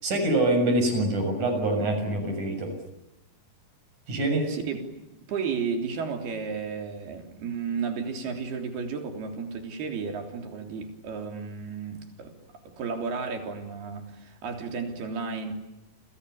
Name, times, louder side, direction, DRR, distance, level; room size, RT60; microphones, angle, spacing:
voice 1, 0.0-2.7 4.1-4.5, right 1 dB, 50° right, 8.1 m, -25 dB
voice 2, 4.5-4.9 5.3-12.4 12.7-15.5, right 5 dB, 90° right, 5.5 m, -33 dB
29.5 x 27.0 x 7.1 m
omnidirectional pair, 4.4 m